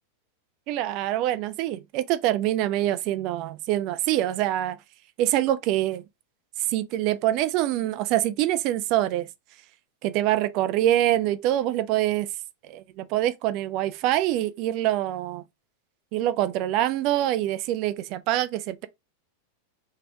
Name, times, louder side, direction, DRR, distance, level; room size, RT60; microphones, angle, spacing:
voice 1, 0.7-4.8 5.2-6.0 6.7-9.3 10.0-12.3 12.7-15.4 16.1-18.9, right 13 dB, 40° right, 0.3 m, -25 dB
2.9 x 2.8 x 3.3 m
figure-of-eight pair, 90°, 0 cm